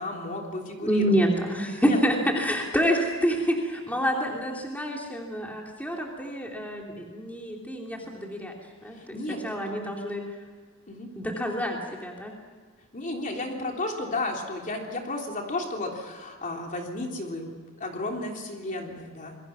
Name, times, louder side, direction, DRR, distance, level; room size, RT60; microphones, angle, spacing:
voice 1, 0.0-1.2 1.7-2.0 8.9-9.6 10.9-11.1 12.9-19.4, left 2 dB, 40° left, 1 dB, 3.4 m, -33 dB
voice 2, 0.8-8.5 8.8-9.2 9.4-10.2 11.1-12.3, equal, 10° left, 0 dB, 2.8 m, -27 dB
27.5 x 22.0 x 6.1 m, 1.5 s
head